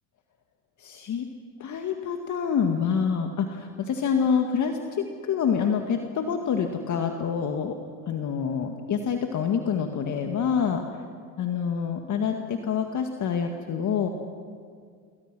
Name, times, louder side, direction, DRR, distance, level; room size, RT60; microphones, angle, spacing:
voice 1, 0.8-1.3 1.6-7.7 8.1-10.8 11.4-14.1, left 7 dB, 40° left, 4 dB, 1.9 m, -27 dB
28.0 x 23.0 x 6.2 m, 2.1 s
hypercardioid pair, 90°, 44 cm